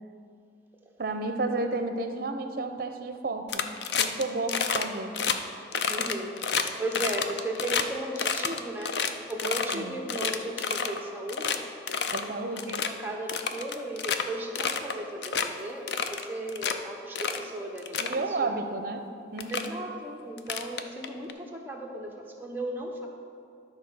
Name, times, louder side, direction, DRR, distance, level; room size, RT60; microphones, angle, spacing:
voice 1, 1.0-3.7 4.0-5.2 9.7-9.9 12.1-12.8 18.0-19.1 19.3-19.7, right 2 dB, 55° right, 7 dB, 0.7 m, -32 dB
sound 1, 3.5-4.2 4.5-4.8 5.1-5.4 5.7-7.8 8.2-9.8 10.1-11.0 11.3-11.6 11.9-12.2 12.6-12.9 13.3-14.2 14.6-14.9 15.2-15.5 15.9-16.7 17.2-17.4 17.8-18.2 19.0-19.1 19.4-19.7 20.4-21.3, left 6 dB, 65° left, 0.5 m, -29 dB
voice 2, 5.9-11.7 12.2-18.6 19.5-23.1, right 1 dB, 10° right, 0 dB, 0.9 m, -36 dB
11.5 x 4.2 x 6.2 m, 2.5 s
head